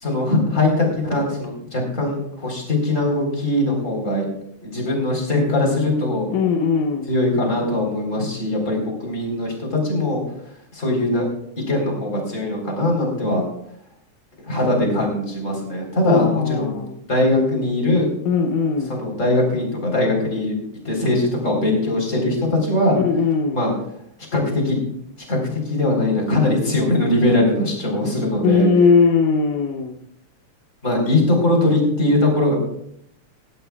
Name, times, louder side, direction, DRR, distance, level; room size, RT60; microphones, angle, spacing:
voice 1, 0.0-4.3 4.6-6.3 7.1-10.2 10.7-11.2 11.7-13.4 14.4-16.8 17.1-18.1 18.9-20.5 20.8-23.0 23.5-23.7 24.3-24.8 25.2-28.7 30.8-32.5, left 1 dB, 25° left, 0 dB, 4.2 m, -21 dB
voice 2, 6.3-7.1 16.1-17.0 18.3-19.0 23.0-23.7 28.4-30.0, left 5 dB, 85° left, 4 dB, 2.3 m, -19 dB
17.0 x 15.5 x 2.4 m, 0.74 s
omnidirectional pair, 3.4 m